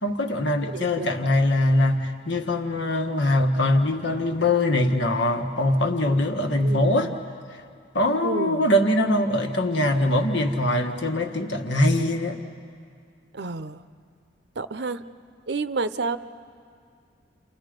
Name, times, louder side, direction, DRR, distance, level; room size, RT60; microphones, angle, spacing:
voice 1, 0.0-7.1 7.9-12.4, left 1 dB, 75° left, 4 dB, 1.6 m, -22 dB
voice 2, 0.7-1.1 6.6-7.2 8.2-8.7 13.3-13.8 14.6-15.0 15.5-16.2, right 3 dB, 65° right, 12 dB, 0.7 m, -30 dB
29.5 x 29.0 x 5.2 m, 2.3 s
head